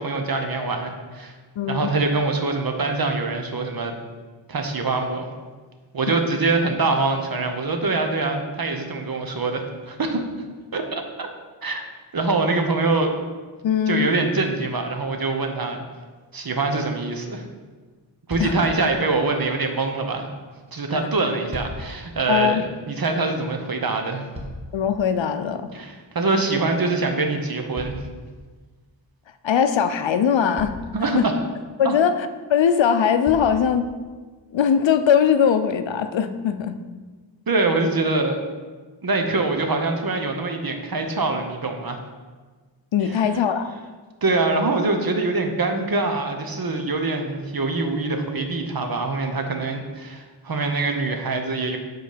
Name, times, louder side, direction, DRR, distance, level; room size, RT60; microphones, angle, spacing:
voice 1, 0.0-1.4 1.7-3.9 4.5-5.3 5.9-10.2 10.7-11.3 11.6-11.8 12.1-13.1 13.9-15.8 16.3-17.5 18.3-20.3 20.7-24.3 25.7-28.0 30.9-31.3 31.8-32.0 37.5-38.4 39.0-42.0 43.0-43.2 44.2-51.8, right 3 dB, 50° right, 5 dB, 0.9 m, -24 dB
voice 2, 1.6-1.9 6.1-6.2 13.6-14.1 18.4-18.5 22.3-22.6 24.7-25.7 29.4-30.7 31.1-31.3 31.8-33.8 34.5-36.7 42.9-43.7, left 8 dB, 80° left, 10 dB, 0.6 m, -20 dB
sound 1, 18.3-18.8 21.1-22.0 23.9-24.9 27.7-28.7 29.9-30.0 30.5-31.0 32.4-32.5 33.2-33.6 34.4-34.5, equal, 15° right, 1.3 m, -37 dB
7.8 x 4.0 x 5.0 m, 1.4 s
wide cardioid pair, 90°, 44 cm